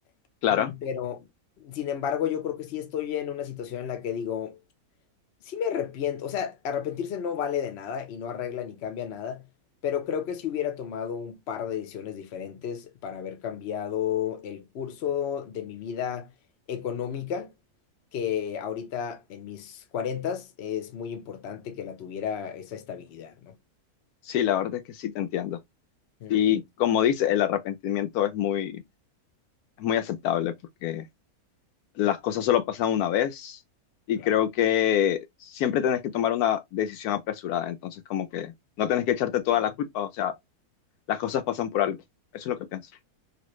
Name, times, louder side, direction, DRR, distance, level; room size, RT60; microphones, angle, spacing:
voice 1, 0.5-1.3 1.6-4.6 5.4-9.5 9.8-16.3 16.7-17.5 18.1-23.5 26.2-26.6 34.2-34.3, left 8 dB, 55° left, 0.8 m, -32 dB
voice 2, 24.3-25.6 26.3-28.8 29.8-30.5 30.8-31.1 32.0-33.6 34.1-38.5 38.8-40.3 41.1-42.0 42.3-42.8, left 10 dB, 80° left, 1.1 m, -26 dB
3.0 x 2.5 x 3.0 m
omnidirectional pair, 1.6 m